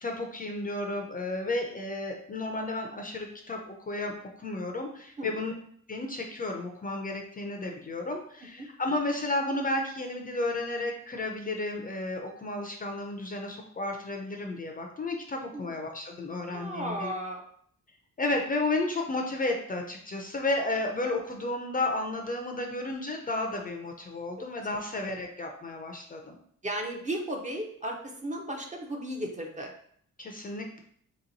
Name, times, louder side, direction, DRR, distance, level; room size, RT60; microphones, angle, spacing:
voice 1, 0.0-5.5 5.9-17.1 18.2-26.4 30.2-30.8, left 2 dB, 25° left, 2 dB, 0.4 m, -32 dB
voice 2, 16.5-17.4 26.6-29.7, right 1 dB, 25° right, 2 dB, 0.5 m, -35 dB
3.1 x 2.9 x 3.9 m, 0.62 s
wide cardioid pair, 140°, 32 cm